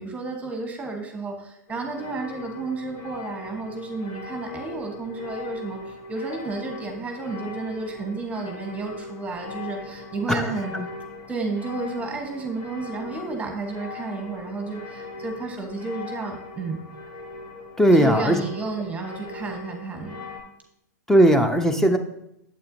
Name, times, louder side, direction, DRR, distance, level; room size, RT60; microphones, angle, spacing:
voice 1, 0.0-10.7 11.3-16.8 17.9-20.2, right 3 dB, 15° right, 3 dB, 1.2 m, -32 dB
sound 1, 1.7-20.4, left 4 dB, 60° left, 3.0 m, -40 dB
voice 2, 17.8-18.4 21.1-22.0, right 1 dB, 5° left, 8 dB, 0.7 m, -18 dB
8.6 x 7.6 x 2.7 m, 0.78 s
hypercardioid pair, 110°, 9 cm